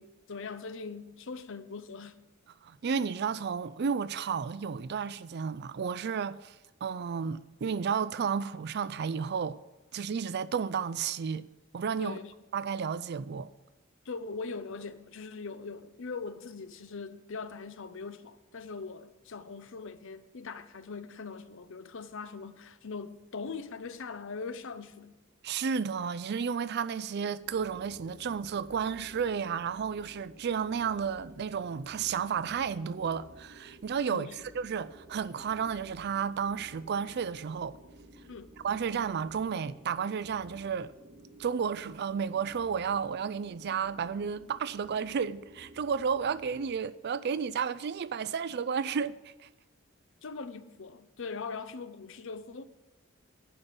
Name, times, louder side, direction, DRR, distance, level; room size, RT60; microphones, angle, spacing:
voice 1, 0.0-2.2 12.0-12.3 14.0-25.2 34.1-34.3 38.3-38.5 50.2-52.6, left 4 dB, 65° left, 0.7 m, -41 dB
voice 2, 2.6-6.6 6.8-9.6 9.9-11.5 11.7-12.2 12.5-13.5 25.4-34.3 34.5-37.8 38.6-40.9 41.4-49.5, right 6 dB, 55° right, 0.4 m, -32 dB
sound 1, 27.4-46.7, equal, 35° right, 2.7 m, -54 dB
11.0 x 5.3 x 8.5 m
head